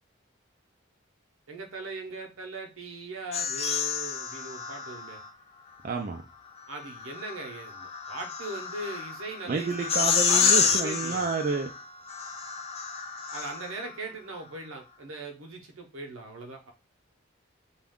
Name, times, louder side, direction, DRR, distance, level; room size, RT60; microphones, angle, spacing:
voice 1, 1.5-5.2 6.7-11.2 13.3-16.7, right 2 dB, 80° right, 4 dB, 0.8 m, -39 dB
sound 1, 3.3-5.3 6.7-13.9, left 6 dB, 30° left, 0.3 m, -29 dB
voice 2, 5.8-6.2 9.5-11.7, right 4 dB, 40° right, 4 dB, 0.4 m, -29 dB
2.5 x 2.2 x 3.5 m, 0.31 s
head